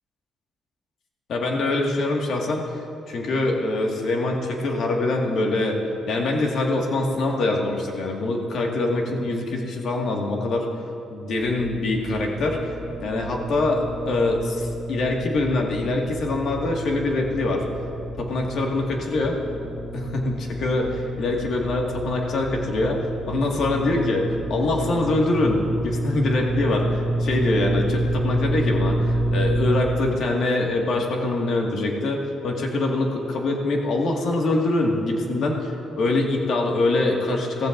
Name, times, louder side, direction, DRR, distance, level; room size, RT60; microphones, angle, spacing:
voice 1, 1.3-2.7 3.1-5.8 6.1-10.7 11.1-17.6 18.2-19.4 19.9-23.0 23.3-37.7, left 2 dB, 65° left, 0 dB, 1.9 m, -24 dB
sound 1, 11.4-29.8, right 1 dB, 15° left, 3.0 m, -29 dB
15.5 x 15.0 x 2.6 m, 2.6 s
cardioid pair, 90°, 0 cm